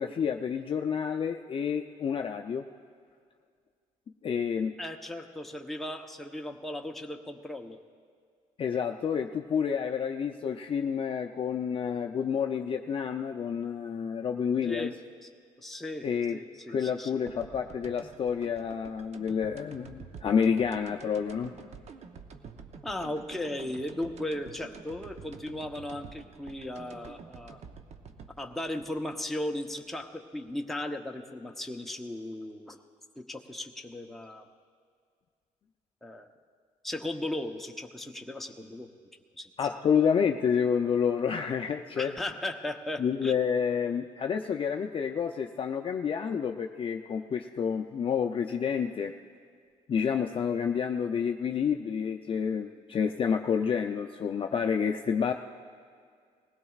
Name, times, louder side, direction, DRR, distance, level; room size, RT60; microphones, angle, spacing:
voice 1, 0.0-2.7 4.2-4.7 8.6-14.9 16.0-16.4 16.7-21.5 39.6-42.1 43.0-49.1 49.9-55.3, left 7 dB, 40° left, 4 dB, 0.5 m, -29 dB
voice 2, 4.8-7.8 14.6-14.9 15.2-15.3 15.6-16.0 16.3-17.1 22.8-27.6 28.4-32.8 33.2-34.5 36.0-36.3 36.8-38.9 39.4-39.5 42.0-43.4, left 1 dB, ahead, 2 dB, 0.8 m, -36 dB
sound 1, 17.3-30.1, right 5 dB, 55° right, 0.8 m, -49 dB
20.0 x 16.5 x 2.4 m, 2.1 s
cardioid pair, 105°, 14 cm